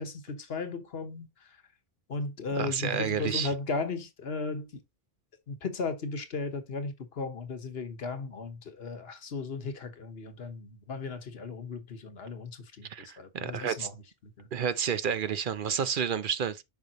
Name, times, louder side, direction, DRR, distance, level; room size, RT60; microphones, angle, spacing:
voice 1, 0.0-1.5 2.1-4.8 5.5-13.9 14.4-14.5, left 4 dB, 80° left, 1.3 m, -36 dB
voice 2, 2.5-3.5 12.9-13.9 14.5-16.6, right 7 dB, 60° right, 0.7 m, -30 dB
7.1 x 5.6 x 2.9 m
omnidirectional pair, 1.0 m